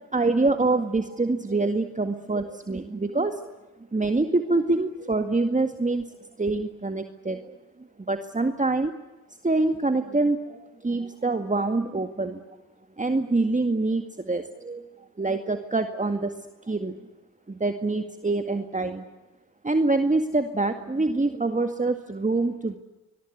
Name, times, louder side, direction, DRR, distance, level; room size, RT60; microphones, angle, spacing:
voice 1, 0.1-3.4 3.9-6.1 6.4-7.6 8.1-8.9 9.4-12.6 13.0-14.8 15.2-17.0 17.5-19.1 19.6-22.8, right 3 dB, 15° right, 7 dB, 2.0 m, -25 dB
25.5 x 22.0 x 8.2 m, 1.1 s
supercardioid pair, 55°, 45 cm